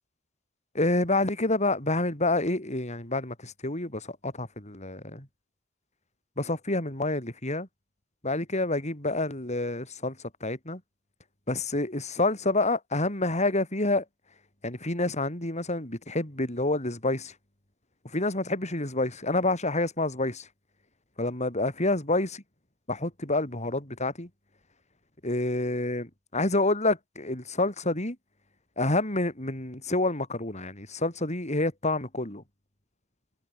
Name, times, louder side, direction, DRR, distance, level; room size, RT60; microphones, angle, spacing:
voice 1, 0.7-5.3 6.4-7.7 8.2-10.2 10.4-10.8 11.5-14.0 14.6-17.3 18.1-20.5 21.2-22.3 22.9-24.3 25.2-28.2 28.8-32.4, left 2 dB, 35° left, 6.1 m, -28 dB
head